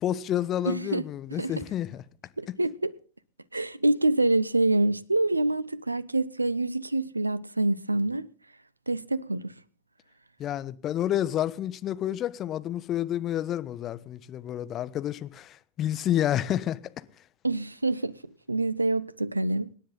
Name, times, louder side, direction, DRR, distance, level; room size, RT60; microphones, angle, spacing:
voice 1, 0.0-2.0 2.5-2.6 10.4-16.8, left 11 dB, 30° left, 1.1 m, -29 dB
voice 2, 0.7-1.0 1.3-1.7 2.4-2.9 3.5-8.3 8.9-9.5 17.4-18.2 18.5-19.7, right 2 dB, 80° right, 0.7 m, -26 dB
26.0 x 10.0 x 4.0 m
figure-of-eight pair, 90°, 0 cm